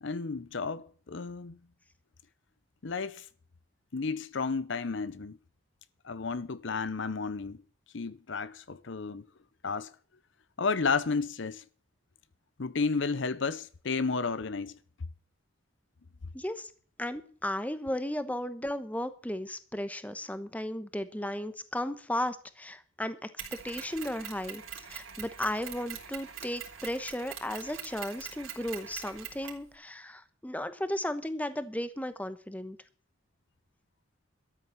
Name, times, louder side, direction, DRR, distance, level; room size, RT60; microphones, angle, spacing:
voice 1, 0.0-1.6 2.8-3.3 3.9-5.4 6.0-7.6 7.9-9.3 9.6-9.9 10.6-11.6 12.6-14.8, left 4 dB, 60° left, 0.7 m, -32 dB
voice 2, 16.3-16.7 17.0-24.6 24.9-32.8, left 1 dB, 5° left, 1.0 m, -35 dB
Mechanisms, 23.4-29.7, right 8 dB, 75° right, 3.9 m, -43 dB
13.5 x 9.7 x 7.1 m
head